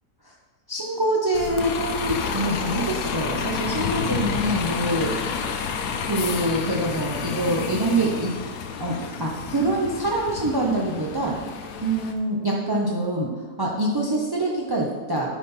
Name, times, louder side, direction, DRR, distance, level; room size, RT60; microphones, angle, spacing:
voice 1, 0.7-5.1 6.0-8.3 8.8-11.4 11.8-13.3 13.6-15.3, right 1 dB, 30° right, -3 dB, 0.4 m, -25 dB
Bus, 1.3-12.1, left 6 dB, 85° left, 1.3 m, -30 dB
10.0 x 4.2 x 5.6 m, 1.4 s
omnidirectional pair, 1.7 m